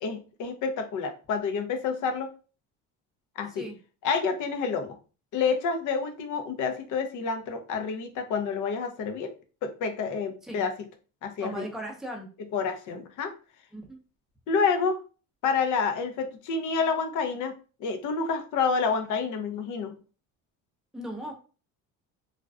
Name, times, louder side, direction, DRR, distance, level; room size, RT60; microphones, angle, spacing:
voice 1, 0.0-2.3 3.4-3.6 4.0-5.0 5.3-9.3 9.6-10.7 11.2-11.7 12.5-13.3 14.5-15.0 15.4-17.5 17.8-19.9, left 5 dB, 50° left, 7 dB, 0.6 m, -28 dB
voice 2, 11.4-12.3 13.7-14.0 20.9-21.3, right 1 dB, ahead, 0 dB, 0.6 m, -37 dB
2.4 x 2.1 x 2.4 m, 0.35 s
supercardioid pair, 95°, 38 cm